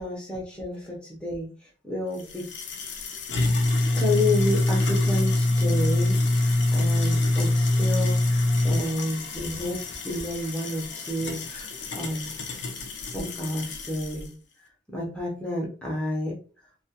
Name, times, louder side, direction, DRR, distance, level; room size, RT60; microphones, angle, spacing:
voice 1, 0.0-1.5 1.8-2.5 3.9-11.7 12.0-12.3 13.1-14.3 14.9-16.3, left 1 dB, 5° left, -4 dB, 0.6 m, -30 dB
sound 1, 2.2-14.2, left 2 dB, 60° left, 0.4 m, -25 dB
2.3 x 2.1 x 2.7 m, 0.39 s
head